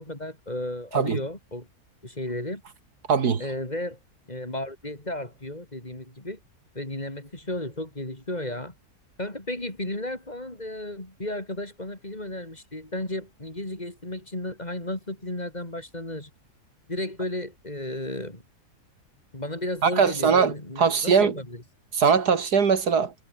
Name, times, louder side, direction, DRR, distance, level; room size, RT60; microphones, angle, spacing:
voice 1, 0.0-1.7 2.0-2.6 3.4-4.0 4.3-6.4 6.7-8.7 9.2-16.3 16.9-18.4 19.3-21.6, left 1 dB, 25° left, 4.1 m, -34 dB
voice 2, 3.1-3.4 19.8-21.3 21.9-23.1, right 6 dB, 75° right, 2.5 m, -21 dB
omnidirectional pair, 1.7 m